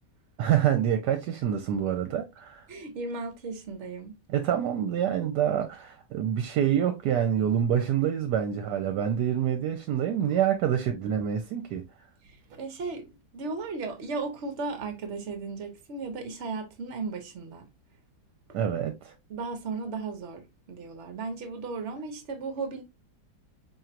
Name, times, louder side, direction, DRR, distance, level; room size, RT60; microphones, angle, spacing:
voice 1, 0.4-2.6 4.3-11.8 18.5-19.1, right 9 dB, 75° right, 1.2 m, -26 dB
voice 2, 2.7-4.2 12.2-17.6 18.5-18.6 19.3-22.8, right 4 dB, 55° right, 0.9 m, -36 dB
4.4 x 2.9 x 2.4 m
omnidirectional pair, 1.8 m